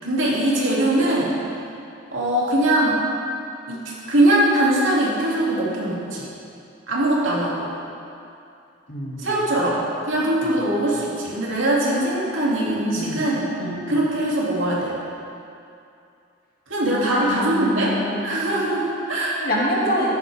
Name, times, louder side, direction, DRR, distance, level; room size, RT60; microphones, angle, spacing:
voice 1, 0.0-1.3 2.1-3.0 3.7-6.3 6.9-7.7 9.2-13.5 13.9-15.0 16.7-18.0 18.2-19.4, right 1 dB, 90° right, -6 dB, 2.9 m, -21 dB
voice 2, 8.9-9.3 12.9-13.2 13.6-14.0 16.9-18.3 19.4-20.2, equal, 50° left, -5 dB, 2.4 m, -26 dB
14.0 x 11.0 x 3.6 m, 2.6 s
head